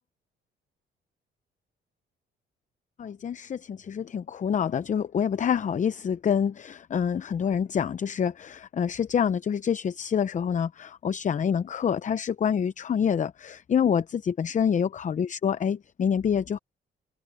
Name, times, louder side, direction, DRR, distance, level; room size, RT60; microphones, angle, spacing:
voice 1, 3.0-16.6, left 7 dB, 40° left, 0.6 m, -27 dB
cardioid pair, 90°, 20 cm